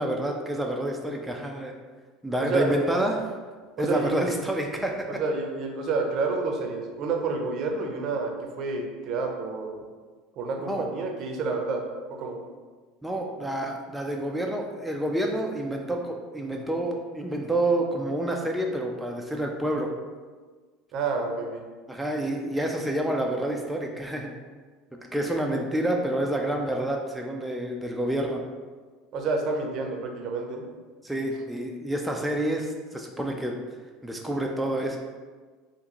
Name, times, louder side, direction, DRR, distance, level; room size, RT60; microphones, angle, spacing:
voice 1, 0.0-1.7 2.2-3.3 3.8-5.2 10.6-10.9 13.0-19.9 21.9-24.3 25.1-28.4 31.0-33.6 34.0-35.0, right 1 dB, 5° right, 0 dB, 0.4 m, -28 dB
voice 2, 2.4-2.8 3.8-4.2 5.2-9.8 10.4-11.8 12.1-12.4 20.9-21.6 29.1-30.6, right 3 dB, 55° right, 3 dB, 0.6 m, -29 dB
3.6 x 2.5 x 2.9 m, 1.4 s
hypercardioid pair, 85°, 0 cm